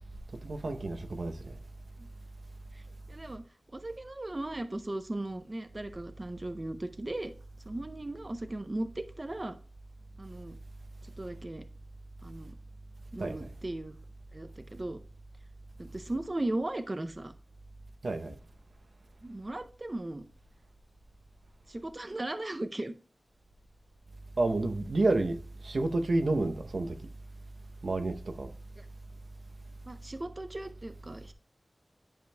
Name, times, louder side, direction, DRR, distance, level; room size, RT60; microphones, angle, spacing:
voice 1, 0.4-1.5 13.2-13.5 18.0-18.4 24.4-27.0 27.8-28.5, right 2 dB, 75° right, 0.7 m, -30 dB
voice 2, 3.1-3.4 3.7-7.3 7.7-9.5 10.2-10.6 11.0-11.6 12.2-12.5 13.1-13.9 14.3-15.0 15.8-17.3 19.2-20.2 21.7-22.9 28.8-28.9 29.9-31.3, right 1 dB, 35° right, 0.5 m, -37 dB
10.5 x 5.1 x 2.2 m
wide cardioid pair, 70°, 0 cm